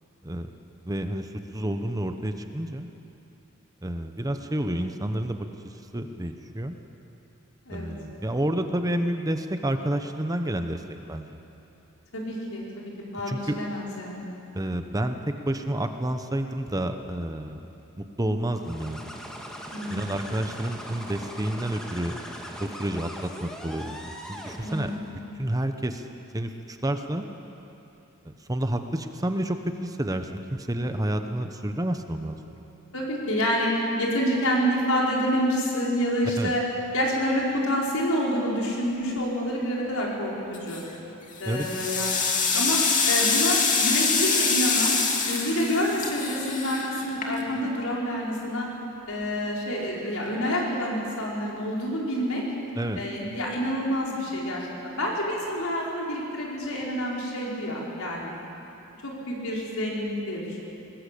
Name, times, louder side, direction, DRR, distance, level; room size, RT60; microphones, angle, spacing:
voice 1, 0.8-2.9 3.8-6.8 7.7-10.8 11.1-11.4 13.3-13.6 14.5-17.6 18.0-19.1 19.9-22.2 22.6-24.0 24.3-26.1 26.3-27.3 28.2-32.4 36.4-36.5 41.5-41.7 52.8-53.0, right 1 dB, 15° right, 7 dB, 0.9 m, -29 dB
voice 2, 12.1-14.3 19.7-20.1 24.6-25.0 32.9-33.7 34.0-36.6 36.9-40.8 41.4-42.3 42.5-42.8 43.1-45.0 45.3-48.7 49.1-52.4 53.0-58.4 59.0-60.6, equal, 80° left, -3 dB, 5.2 m, -28 dB
sound 1, 18.5-25.1, equal, 5° left, 2.1 m, -40 dB
sound 2, 40.5-40.9 41.4-47.7, left 5 dB, 35° left, 2.6 m, -25 dB
21.0 x 20.0 x 8.5 m, 2.9 s
head